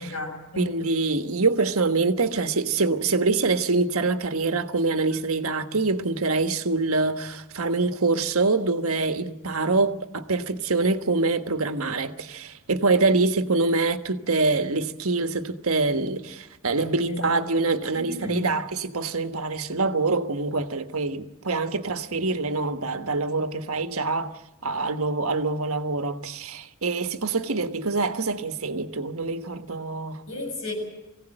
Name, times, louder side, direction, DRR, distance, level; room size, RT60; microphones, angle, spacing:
voice 1, 0.0-0.7 17.1-17.4 17.9-18.5 30.3-30.7, left 2 dB, 80° left, 7.3 m, -33 dB
voice 2, 0.6-24.3 24.6-30.3, right 3 dB, 85° right, 1.4 m, -25 dB
23.0 x 17.0 x 9.0 m
head